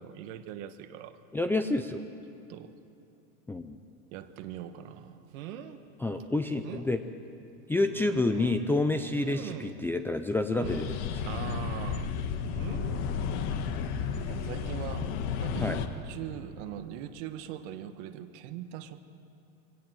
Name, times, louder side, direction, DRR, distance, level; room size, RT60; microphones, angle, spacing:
voice 1, 0.0-1.2 2.5-2.7 4.1-5.2 11.2-12.1 14.3-15.1 15.4-19.0, right 11 dB, 55° right, 10 dB, 1.3 m, -41 dB
voice 2, 1.3-2.0 3.5-3.8 6.0-7.0 7.7-11.0 15.6-15.8, left 2 dB, 5° left, 5 dB, 0.5 m, -28 dB
sound 1, 4.4-4.5 5.3-5.8 6.2-6.3 6.6-6.9 7.8-8.7 9.2-9.9 10.5-11.0 12.5-13.0 14.1-14.3 14.7-14.8, right 10 dB, 75° right, 1.4 m, -42 dB
sound 2, 10.6-15.9, left 6 dB, 55° left, 1.5 m, -32 dB
23.5 x 17.5 x 7.6 m, 2.7 s
supercardioid pair, 130°, 40 cm